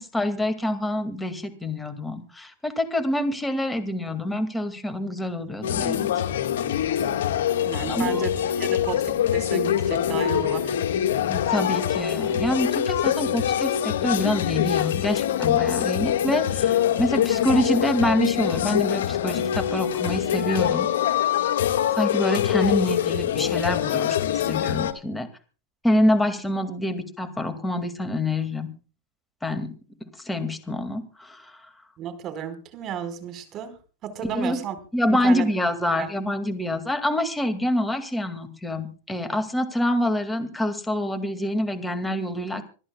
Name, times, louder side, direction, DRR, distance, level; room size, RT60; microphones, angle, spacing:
voice 1, 0.0-6.1 7.9-8.2 11.3-20.9 21.9-25.3 25.8-28.7 29.4-29.7 30.0-31.7 34.3-34.6 34.9-42.7, left 1 dB, 10° left, 7 dB, 2.2 m, -26 dB
sound 1, 5.6-24.9, left 10 dB, 80° left, 1.7 m, -24 dB
voice 2, 7.7-10.8 32.0-33.8 34.0-34.8 35.1-35.5 36.0-36.1, right 8 dB, 40° right, 9 dB, 4.6 m, -33 dB
27.0 x 12.0 x 2.3 m, 0.36 s
hypercardioid pair, 115°, 0 cm